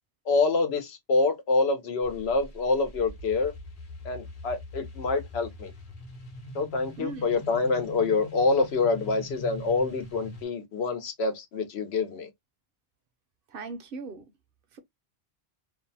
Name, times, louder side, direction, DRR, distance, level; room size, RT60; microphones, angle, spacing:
voice 1, 0.3-3.5 4.0-5.7 6.5-12.3, left 3 dB, 90° left, 1.0 m, -26 dB
sound 1, 2.0-10.4, left 2 dB, 55° left, 0.8 m, -43 dB
voice 2, 7.0-7.4 13.5-14.3 14.7-14.8, right 3 dB, 65° right, 0.7 m, -39 dB
2.6 x 2.1 x 2.5 m
omnidirectional pair, 1.0 m